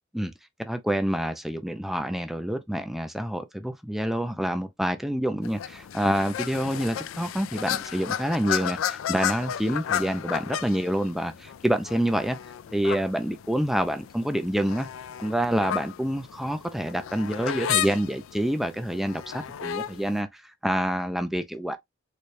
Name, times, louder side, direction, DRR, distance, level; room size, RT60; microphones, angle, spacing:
voice 1, 0.7-12.4 12.7-14.9 15.2-21.8, equal, ahead, 0.3 m, -27 dB
sound 1, 5.4-20.2, left 9 dB, 80° left, 0.4 m, -33 dB
4.1 x 2.2 x 3.1 m
head